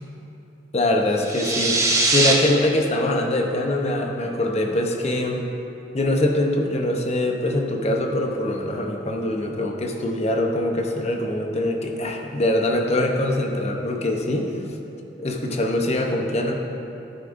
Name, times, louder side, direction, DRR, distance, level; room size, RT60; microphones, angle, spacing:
voice 1, 0.7-1.8 2.1-5.4 5.9-14.5 15.2-16.5, left 1 dB, 35° left, 2 dB, 0.8 m, -23 dB
sound 1, 1.2-2.3, right 2 dB, 15° right, 0.9 m, -20 dB
11.5 x 9.5 x 2.6 m, 2.9 s
head